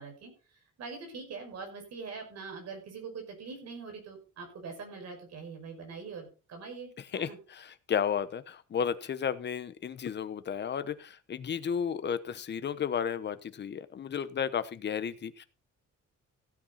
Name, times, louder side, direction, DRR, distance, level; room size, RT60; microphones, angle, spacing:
voice 1, 0.0-7.4, right 4 dB, 60° right, 4 dB, 5.7 m, -43 dB
voice 2, 7.1-15.4, left 7 dB, 35° left, 13 dB, 1.0 m, -33 dB
15.5 x 8.8 x 4.1 m, 0.33 s
cardioid pair, 175°, 29 cm